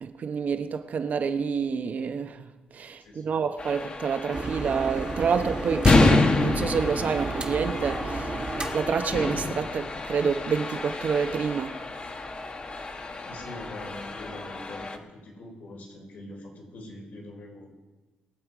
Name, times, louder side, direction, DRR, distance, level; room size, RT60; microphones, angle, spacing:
voice 1, 0.0-2.5 2.7-8.3 8.7-11.7, right 6 dB, 55° right, 1.1 m, -28 dB
voice 2, 3.0-3.3 13.2-17.7, left 1 dB, 70° left, 4.6 m, -43 dB
sound 1, 3.6-15.0, left 3 dB, 35° left, 1.3 m, -28 dB
sound 2, 4.3-9.8, right 3 dB, 30° right, 1.7 m, -33 dB
22.0 x 7.9 x 5.0 m
cardioid pair, 95°, 3 cm